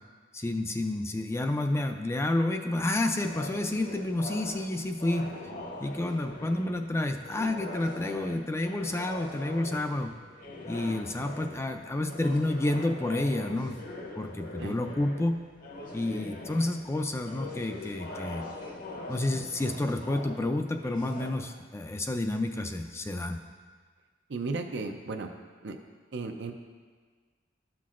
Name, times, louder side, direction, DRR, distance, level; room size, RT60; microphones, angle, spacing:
voice 1, 0.3-5.3 5.8-10.1 10.7-13.8 14.2-15.4 15.9-18.4 19.1-23.4, left 1 dB, 15° left, 5 dB, 0.4 m, -30 dB
sound 1, 3.2-21.3, left 2 dB, 50° left, 0.8 m, -42 dB
voice 2, 24.3-25.3 25.6-25.8 26.1-26.5, right 3 dB, 70° right, 4 dB, 0.5 m, -34 dB
12.5 x 5.9 x 2.5 m, 1.5 s
head